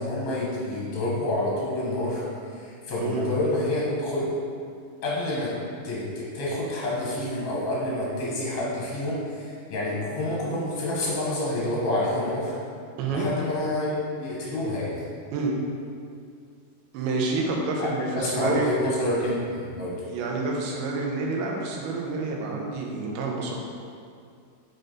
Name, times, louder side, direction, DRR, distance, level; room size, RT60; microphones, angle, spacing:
voice 1, 0.0-4.3 5.0-5.5 5.8-12.6 13.1-14.9 17.8-20.0, left 1 dB, 65° left, -6 dB, 1.4 m, -28 dB
voice 2, 16.9-18.7 20.1-23.5, right 3 dB, 85° right, -1 dB, 2.8 m, -28 dB
8.7 x 3.9 x 3.9 m, 2.3 s
omnidirectional pair, 4.4 m